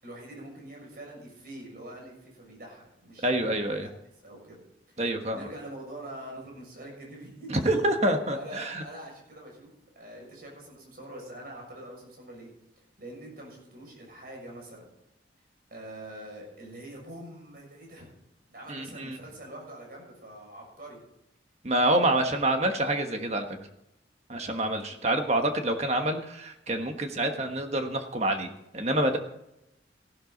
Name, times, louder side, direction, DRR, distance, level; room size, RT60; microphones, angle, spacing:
voice 1, 0.0-3.5 4.2-4.6 4.9-5.0 5.3-7.5 8.3-12.5 13.0-14.9 15.7-18.1 18.5-21.0 22.0-22.4, right 1 dB, 50° right, -1 dB, 6.5 m, -44 dB
voice 2, 3.2-3.9 5.0-5.4 7.5-8.8 18.7-19.2 21.6-23.7 24.3-29.2, right 1 dB, 35° right, 5 dB, 1.4 m, -27 dB
15.5 x 12.5 x 4.0 m, 0.84 s
head